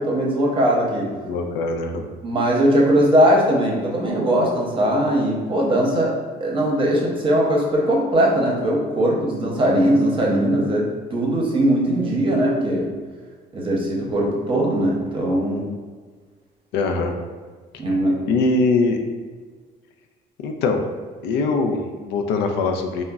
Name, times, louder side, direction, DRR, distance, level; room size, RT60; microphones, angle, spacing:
voice 1, 0.0-1.1 2.2-6.1 6.4-12.9 13.5-15.7 17.8-18.2, right 1 dB, 30° right, -2 dB, 0.7 m, -20 dB
voice 2, 1.2-2.1 16.7-17.1 18.3-19.0 20.4-20.9 21.2-23.0, left 3 dB, 85° left, 4 dB, 0.4 m, -22 dB
3.7 x 2.1 x 2.3 m, 1.5 s
cardioid pair, 110°, 17 cm